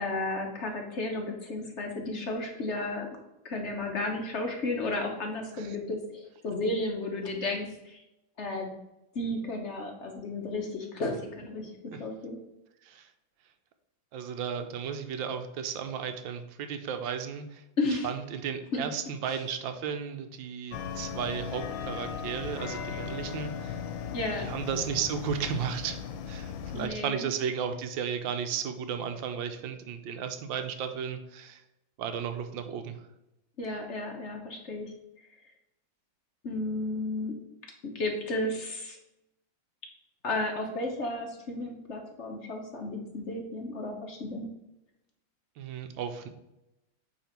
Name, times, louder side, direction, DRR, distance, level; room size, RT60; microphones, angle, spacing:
voice 1, 0.0-3.1 3.4-8.0 8.4-8.7 9.1-11.7 12.0-12.4 17.8-18.1 18.7-18.8 19.2-19.3 24.1-24.4 26.7-27.3 33.6-34.9 36.4-37.3 37.9-39.0 40.2-44.5, left 2 dB, 50° left, 2 dB, 1.0 m, -33 dB
voice 2, 14.1-17.6 18.0-23.8 24.4-26.0 26.3-31.6 32.0-33.0 45.6-46.3, right 7 dB, 85° right, 7 dB, 1.5 m, -34 dB
sound 1, 20.7-26.9, left 7 dB, 85° left, 1.4 m, -37 dB
8.6 x 3.2 x 4.4 m, 0.92 s
omnidirectional pair, 2.1 m